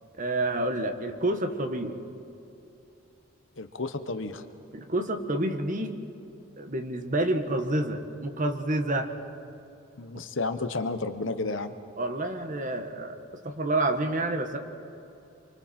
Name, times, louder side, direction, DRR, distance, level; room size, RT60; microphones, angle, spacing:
voice 1, 0.2-1.9 4.7-6.0 6.6-9.1 10.1-10.2 12.0-13.2 13.4-14.6, right 1 dB, 40° right, 6 dB, 1.4 m, -28 dB
voice 2, 3.6-4.4 10.0-11.7, left 3 dB, 65° left, 9 dB, 1.1 m, -31 dB
27.5 x 24.0 x 4.4 m, 2.7 s
head